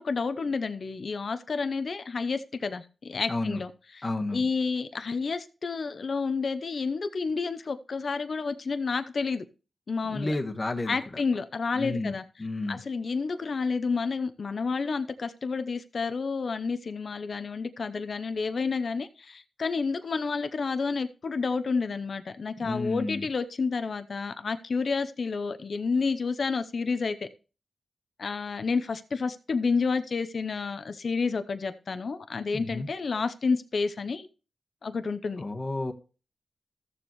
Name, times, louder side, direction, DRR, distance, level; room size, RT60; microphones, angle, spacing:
voice 1, 0.0-4.0 4.3-9.4 9.9-10.3 10.9-12.2 12.7-27.3 28.2-34.3 34.8-35.4, left 4 dB, 65° left, 0.7 m, -30 dB
voice 2, 3.3-3.6 4.0-4.4 10.0-11.0 11.7-12.8 22.6-23.3 32.5-32.9 35.4-35.9, left 2 dB, 35° left, 1.4 m, -31 dB
14.0 x 7.1 x 3.1 m
cardioid pair, 50°, 0 cm